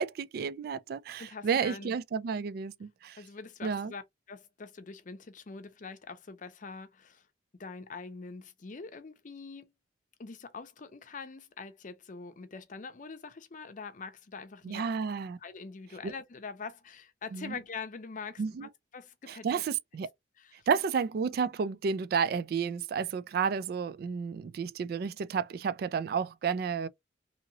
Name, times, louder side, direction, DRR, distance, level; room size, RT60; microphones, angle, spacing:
voice 1, 0.0-3.2 3.6-3.9 14.6-15.4 16.0-16.1 17.3-17.5 18.4-18.7 19.3-20.1 20.7-26.9, right 6 dB, 60° right, 0.3 m, -31 dB
voice 2, 1.2-2.0 3.2-4.0 4.3-7.2 7.6-9.7 10.2-14.8 15.4-19.5 20.4-20.7, left 4 dB, 45° left, 0.5 m, -44 dB
2.8 x 2.8 x 2.7 m
head